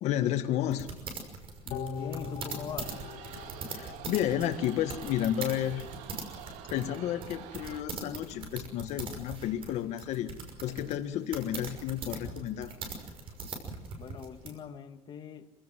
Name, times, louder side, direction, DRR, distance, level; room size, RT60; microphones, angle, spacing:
voice 1, 0.0-0.9 3.7-5.8 6.6-10.3 10.6-12.7, left 11 dB, 65° left, 8 dB, 1.7 m, -31 dB
sound 1, 0.7-14.5, right 4 dB, 50° right, 5.8 m, -41 dB
sound 2, 1.7-5.0 5.4-5.5, left 6 dB, 90° left, 2.2 m, -41 dB
voice 2, 1.7-3.0 14.0-15.5, left 8 dB, 40° left, 5 dB, 1.9 m, -42 dB
sound 3, 2.8-7.8, right 10 dB, 85° right, 2.3 m, -47 dB
27.0 x 17.0 x 7.7 m, 1.0 s
cardioid pair, 145°, 12 cm